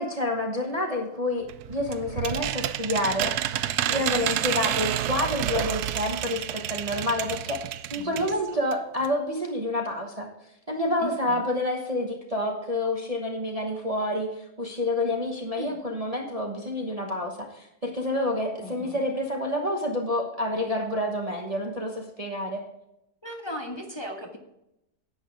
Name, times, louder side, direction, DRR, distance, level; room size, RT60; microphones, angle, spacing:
voice 1, 0.0-3.3 3.9-7.6 7.9-10.3 10.7-14.3 14.6-22.6, left 1 dB, 25° right, 1 dB, 1.1 m, -28 dB
sound 1, 1.5-8.4 8.7-8.8 9.0-9.1, right 12 dB, 80° right, 1.1 m, -29 dB
voice 2, 8.0-8.6 11.0-11.4 15.5-15.8 18.6-19.0 23.2-24.4, equal, 20° left, 0 dB, 1.3 m, -37 dB
11.0 x 8.7 x 3.4 m, 0.85 s
omnidirectional pair, 1.7 m